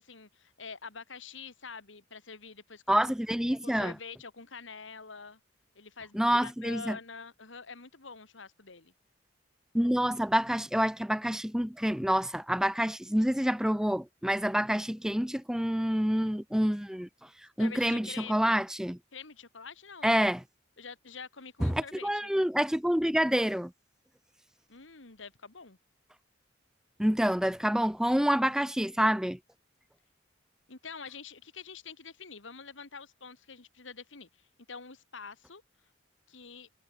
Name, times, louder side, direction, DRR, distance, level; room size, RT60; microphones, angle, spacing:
voice 1, 0.0-3.1 3.6-5.4 5.7-8.9 17.6-18.6 19.1-20.3 20.8-22.3 24.7-25.8 30.7-35.6 36.3-36.7, left 5 dB, 80° left, 2.2 m, -46 dB
voice 2, 2.9-3.9 6.1-7.0 9.7-17.1 17.6-19.0 20.0-20.4 21.6-23.7 27.0-29.4, equal, 5° right, 0.7 m, -27 dB
head